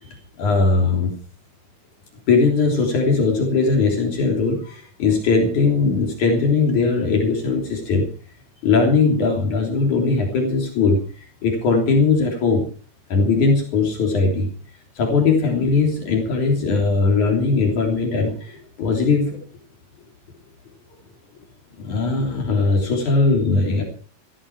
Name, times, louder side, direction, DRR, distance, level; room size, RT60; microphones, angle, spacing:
voice 1, 0.4-1.2 2.3-8.1 8.6-12.6 13.1-14.5 15.0-19.4 21.8-23.8, left 4 dB, 70° left, 2 dB, 4.8 m, -19 dB
17.5 x 15.5 x 4.7 m, 0.40 s
omnidirectional pair, 3.6 m